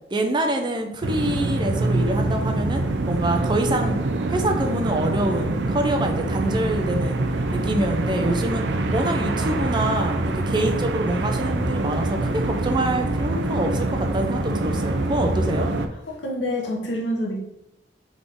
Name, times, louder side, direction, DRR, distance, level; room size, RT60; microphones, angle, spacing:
voice 1, 0.1-7.2 7.5-15.7, right 1 dB, 25° right, 4 dB, 0.5 m, -26 dB
sound 1, 1.0-15.9, right 2 dB, 80° right, 0.5 m, -25 dB
voice 2, 16.1-17.5, equal, 85° left, -1 dB, 1.1 m, -27 dB
3.8 x 3.6 x 3.5 m, 0.89 s
head